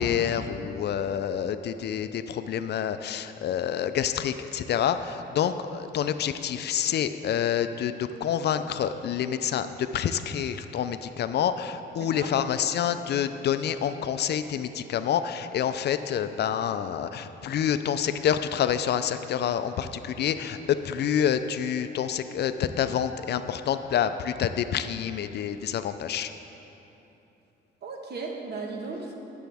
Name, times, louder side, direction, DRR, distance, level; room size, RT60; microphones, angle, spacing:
voice 1, 0.0-26.3, left 9 dB, 55° left, 10 dB, 0.4 m, -27 dB
voice 2, 12.0-12.3 27.8-29.2, right 4 dB, 55° right, 1 dB, 1.2 m, -36 dB
11.5 x 6.9 x 3.4 m, 3.0 s
cardioid pair, 90°, 20 cm